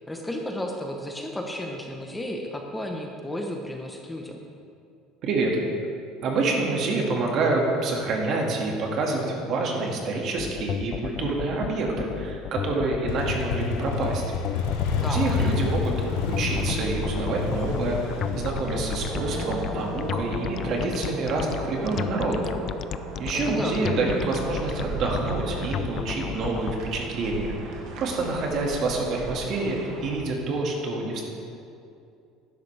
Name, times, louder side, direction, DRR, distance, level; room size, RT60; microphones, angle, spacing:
voice 1, 0.1-4.4 15.0-15.4 23.3-23.9, left 1 dB, 10° left, 2 dB, 1.0 m, -33 dB
voice 2, 6.2-14.2 14.5-14.6 15.1-22.5 23.2-31.2, right 3 dB, 55° right, 0 dB, 2.0 m, -27 dB
sound 1, 10.4-26.7, left 10 dB, 45° left, 0.3 m, -33 dB
Motorcycle, 13.1-20.7, left 5 dB, 80° left, 0.9 m, -29 dB
sound 2, 14.5-30.1, right 2 dB, 70° right, 1.9 m, -37 dB
12.0 x 10.5 x 3.4 m, 2.5 s
supercardioid pair, 115°, 0 cm